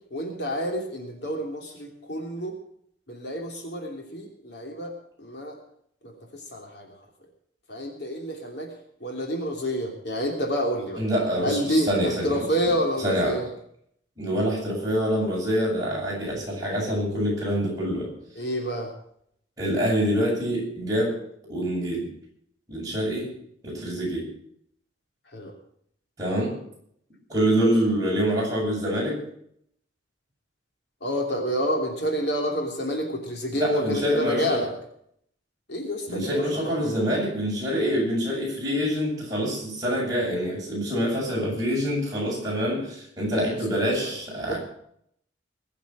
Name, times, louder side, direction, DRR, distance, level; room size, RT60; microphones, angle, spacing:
voice 1, 0.1-2.5 3.1-4.9 5.2-5.6 6.0-6.1 6.5-6.9 7.7-8.7 9.0-11.0 11.4-13.4 18.4-18.9 25.3-25.5 31.0-34.7 35.7-36.9 43.7-44.1 44.5-44.6, equal, 60° left, 1 dB, 3.1 m, -28 dB
voice 2, 11.0-12.5 13.0-13.5 14.2-18.1 19.6-21.2 21.5-22.1 22.7-23.3 23.6-24.3 26.2-26.5 27.3-29.2 33.5-34.7 36.1-44.6, equal, 20° right, -5 dB, 7.9 m, -26 dB
21.0 x 7.3 x 7.5 m, 0.69 s
head